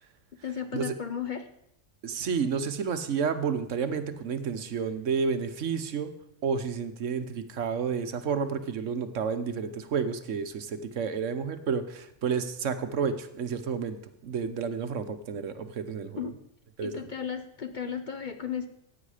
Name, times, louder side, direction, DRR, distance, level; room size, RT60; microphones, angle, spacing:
voice 1, 0.4-1.5 16.1-16.4 16.8-18.7, left 7 dB, 45° left, 8 dB, 0.8 m, -34 dB
voice 2, 2.0-6.2 6.4-14.0 14.2-16.3 16.8-17.0, right 6 dB, 75° right, 10 dB, 1.3 m, -30 dB
15.0 x 9.1 x 4.9 m, 0.77 s
omnidirectional pair, 1.3 m